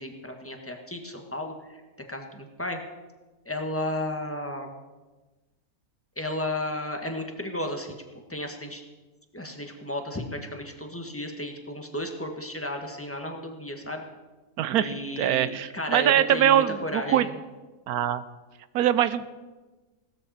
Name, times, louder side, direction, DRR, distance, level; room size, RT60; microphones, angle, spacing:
voice 1, 0.0-1.8 2.1-2.8 3.4-4.7 6.2-8.0 8.3-8.8 9.3-14.0 14.7-17.4, left 1 dB, 10° left, 3 dB, 1.4 m, -33 dB
voice 2, 14.6-14.9 15.2-17.3 17.9-18.2 18.7-19.2, right 11 dB, 85° right, 14 dB, 1.1 m, -22 dB
17.0 x 13.0 x 4.3 m, 1.2 s
omnidirectional pair, 1.6 m